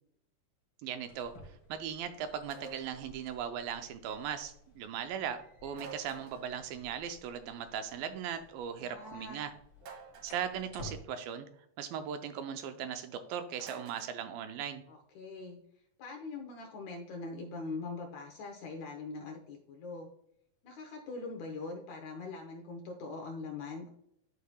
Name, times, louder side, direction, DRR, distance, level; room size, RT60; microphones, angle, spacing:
voice 1, 0.8-9.5 10.2-11.5 11.8-14.8, right 8 dB, 80° right, 8 dB, 2.3 m, -38 dB
sound 1, 1.0-11.0, equal, 35° left, 2.2 m, -54 dB
sound 2, 2.5-3.0 5.7-6.6 9.8-10.5 13.6-14.2, right 5 dB, 60° right, 2.5 m, -49 dB
voice 2, 8.8-9.5 14.9-15.6 16.0-20.1 20.6-23.9, left 3 dB, 70° left, 3 dB, 1.9 m, -42 dB
12.0 x 4.7 x 2.3 m, 0.70 s
omnidirectional pair, 4.2 m